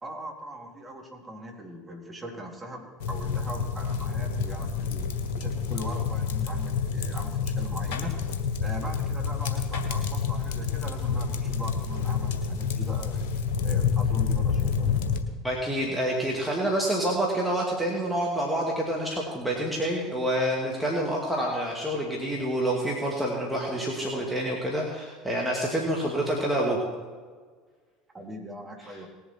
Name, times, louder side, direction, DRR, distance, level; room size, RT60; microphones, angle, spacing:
voice 1, 0.0-5.1 5.4-8.1 8.6-13.3 13.6-15.0 28.1-29.1, equal, 20° right, 0 dB, 3.4 m, -40 dB
sound 1, 3.0-15.2, left 6 dB, 65° left, 1.5 m, -28 dB
voice 2, 15.4-26.8, right 1 dB, ahead, -3 dB, 2.6 m, -27 dB
19.5 x 7.4 x 4.6 m, 1.5 s
hypercardioid pair, 75°, 0 cm